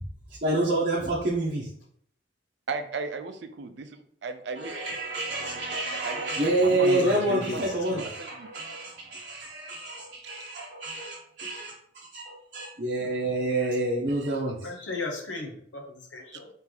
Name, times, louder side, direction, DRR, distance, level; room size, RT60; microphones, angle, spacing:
voice 1, 0.4-1.7 4.6-11.7 12.1-14.7, right 2 dB, 45° right, -6 dB, 0.8 m, -28 dB
voice 2, 2.7-4.9 6.0-6.3 6.6-6.7 7.0-7.1 7.5-7.6 7.9-8.5 13.5-13.7 14.1-14.4 16.3-16.4, right 4 dB, 70° right, 8 dB, 0.5 m, -37 dB
voice 3, 6.6-8.0 14.6-16.5, left 3 dB, 80° left, 2 dB, 0.9 m, -35 dB
3.3 x 3.0 x 3.8 m, 0.62 s
head